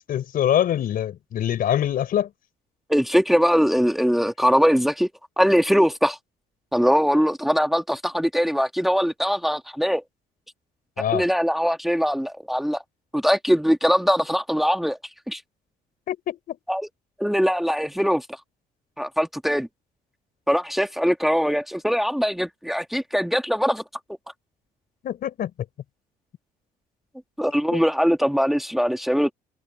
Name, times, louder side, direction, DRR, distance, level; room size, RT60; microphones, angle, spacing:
voice 1, 0.1-2.3 11.0-11.2 16.1-16.6 25.0-25.5 27.7-27.8, left 10 dB, 60° left, 4.7 m, -24 dB
voice 2, 2.9-5.1 5.4-6.2 6.7-10.0 11.1-12.8 13.1-15.0 15.3-15.4 16.7-16.8 17.2-18.3 19.0-19.7 20.5-23.8 27.4-29.3, equal, ahead, 1.8 m, -21 dB
cardioid pair, 110°, 17 cm